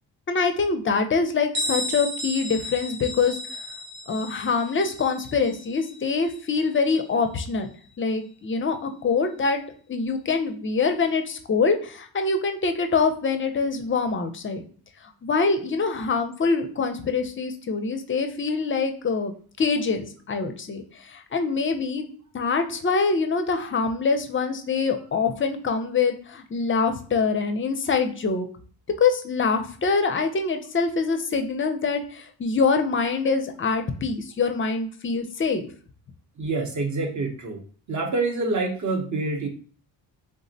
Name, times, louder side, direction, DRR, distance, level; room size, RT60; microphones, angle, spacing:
voice 1, 0.3-3.4 4.1-7.7 8.0-9.6 9.9-14.6 15.2-20.8 21.1-22.1 22.3-28.5 29.0-35.7, left 4 dB, 30° left, 6 dB, 0.4 m, -24 dB
Bell, 1.5-7.1, equal, 60° right, 1.1 m, -34 dB
voice 2, 36.4-37.6 37.9-39.5, right 3 dB, 40° right, 2 dB, 0.7 m, -26 dB
3.4 x 2.0 x 2.6 m, 0.43 s
cardioid pair, 80°, 44 cm